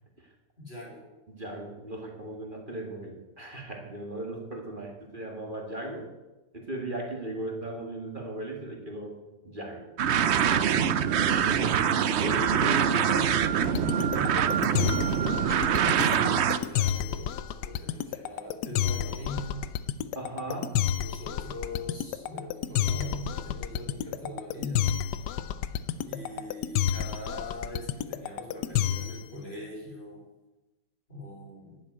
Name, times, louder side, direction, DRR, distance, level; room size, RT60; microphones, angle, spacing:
voice 1, 0.6-1.1 16.0-17.4 17.6-19.6 20.9-24.9 26.0-30.2 31.1-31.8, left 1 dB, 35° left, -4 dB, 4.9 m, -41 dB
voice 2, 1.3-6.1 6.5-9.2 9.4-10.7 11.3-14.9 20.2-20.8, right 1 dB, 30° right, 1 dB, 1.8 m, -37 dB
sound 1, 10.0-16.6, right 8 dB, 65° right, 0.6 m, -24 dB
sound 2, 13.6-29.3, left 10 dB, 75° left, 1.2 m, -29 dB
12.5 x 7.6 x 9.2 m, 1.1 s
omnidirectional pair, 1.9 m